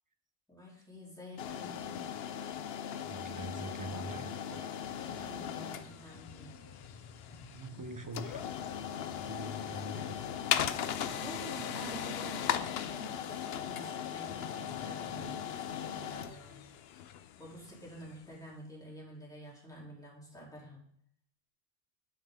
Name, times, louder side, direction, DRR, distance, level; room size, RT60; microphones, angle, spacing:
voice 1, 0.5-2.0 5.0-6.5 11.0-16.6 17.4-20.8, right 1 dB, 5° left, 3.2 m, -49 dB
sound 1, 1.4-18.2, left 9 dB, 65° left, 0.7 m, -38 dB
voice 2, 3.0-4.7 7.5-8.5 9.2-10.2, right 2 dB, 20° right, 0.5 m, -44 dB
sound 2, 4.1-16.3, left 4 dB, 40° left, 0.4 m, -55 dB
12.0 x 5.5 x 3.7 m
omnidirectional pair, 1.3 m